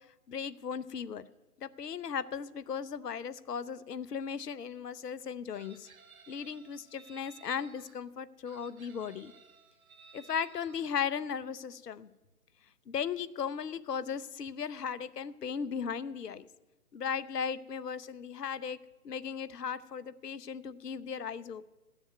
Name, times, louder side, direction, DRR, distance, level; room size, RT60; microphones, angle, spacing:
voice 1, 0.3-1.2 1.6-5.9 6.3-9.3 10.1-12.1 12.9-16.5 16.9-18.8 19.0-21.6, left 7 dB, 75° left, 17 dB, 0.8 m, -37 dB
Chicken rooster, 5.5-8.0 8.5-10.9, right 5 dB, 60° right, 1.3 m, -57 dB
13.0 x 7.1 x 9.3 m, 1.1 s
figure-of-eight pair, 145°, 48 cm